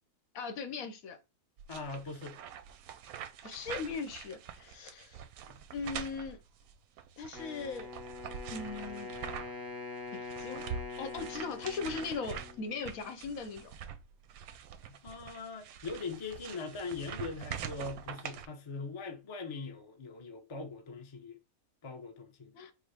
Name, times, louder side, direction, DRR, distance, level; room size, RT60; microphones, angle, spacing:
voice 1, 0.3-1.2 3.4-5.2 5.7-6.4 7.2-7.9 8.5-9.1 10.1-10.6 11.0-13.7 22.5-22.7, left 5 dB, 75° left, 1.2 m, -39 dB
sound 1, 1.6-9.7 10.0-18.5, right 8 dB, 90° right, 1.1 m, -45 dB
voice 2, 1.7-2.4 5.5-5.6 15.0-21.4 21.8-22.5, left 4 dB, 35° left, 0.5 m, -41 dB
Wind instrument woodwind instrument, 7.3-13.3, left 3 dB, 25° right, 0.5 m, -44 dB
4.8 x 2.1 x 4.7 m
omnidirectional pair, 1.5 m